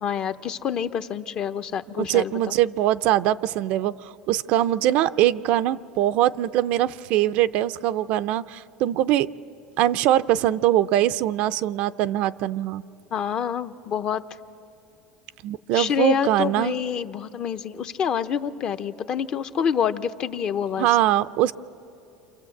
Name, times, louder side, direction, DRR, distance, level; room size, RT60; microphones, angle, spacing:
voice 1, 0.0-2.3 13.1-14.2 15.7-20.9, left 8 dB, 35° left, 10 dB, 0.8 m, -27 dB
voice 2, 2.0-9.3 9.8-12.8 15.4-16.8 20.8-21.5, right 13 dB, 55° right, 13 dB, 0.5 m, -22 dB
28.5 x 26.5 x 7.8 m, 2.8 s
supercardioid pair, 140°, 3 cm